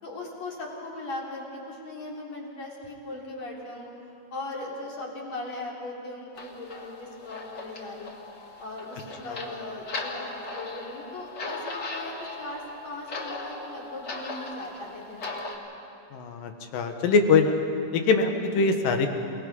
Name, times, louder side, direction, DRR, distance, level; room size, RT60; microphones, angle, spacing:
voice 1, 0.0-3.9 4.3-8.2 8.6-15.6, left 2 dB, 55° left, -3 dB, 4.6 m, -39 dB
sound 1, 6.3-15.5, left 2 dB, 35° left, 1.9 m, -38 dB
voice 2, 16.1-17.5 17.9-19.1, left 4 dB, 90° left, 5 dB, 3.1 m, -23 dB
29.0 x 19.0 x 5.4 m, 2.7 s
omnidirectional pair, 3.8 m